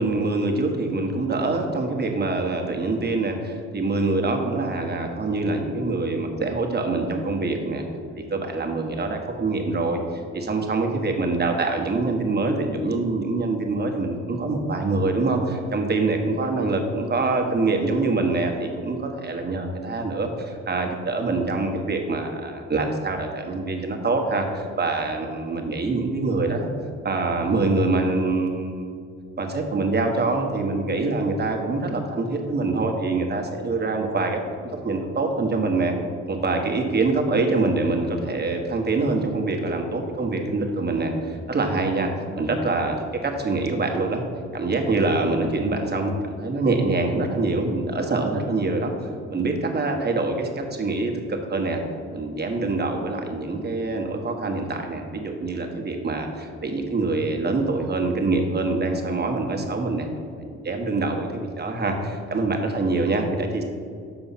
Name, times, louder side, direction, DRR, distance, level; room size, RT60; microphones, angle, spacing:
voice 1, 0.0-7.8 8.1-10.0 10.3-26.7 27.0-28.9 29.4-34.4 34.8-35.9 36.3-42.9 43.2-44.2 44.5-48.9 49.3-50.5 50.8-51.8 52.1-60.1 60.6-63.6, right 3 dB, 35° right, 3 dB, 1.2 m, -25 dB
7.0 x 4.9 x 5.7 m, 2.2 s
cardioid pair, 90°, 30 cm